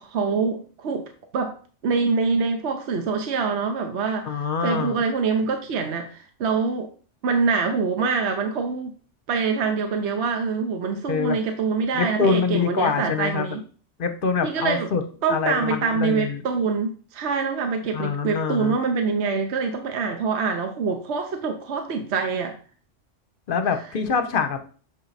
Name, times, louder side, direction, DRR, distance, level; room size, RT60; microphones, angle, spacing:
voice 1, 0.0-1.6 1.8-6.9 7.2-8.9 9.3-13.6 14.4-14.9 15.2-22.6, right 5 dB, 65° right, 1.0 m, -25 dB
voice 2, 4.2-5.0 11.1-11.4 11.9-13.6 14.0-15.0 15.3-16.4 17.9-18.8 23.5-24.6, left 5 dB, 50° left, 0.9 m, -25 dB
7.4 x 4.6 x 4.0 m
omnidirectional pair, 1.3 m